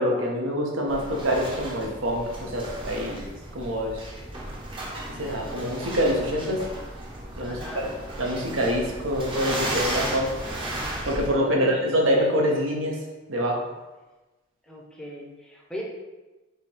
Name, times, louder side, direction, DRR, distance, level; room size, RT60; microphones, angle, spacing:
voice 1, 0.0-3.2 3.5-4.0 5.2-6.6 7.4-7.8 8.2-10.3 11.1-13.0 13.3-13.6, equal, 75° right, -1 dB, 0.9 m, -25 dB
sound 1, 0.9-11.3, right 1 dB, 25° right, 0.8 m, -34 dB
voice 2, 7.4-7.9 11.5-11.8 14.6-15.8, equal, 5° left, -3 dB, 0.7 m, -38 dB
3.4 x 2.9 x 4.5 m, 1.1 s
head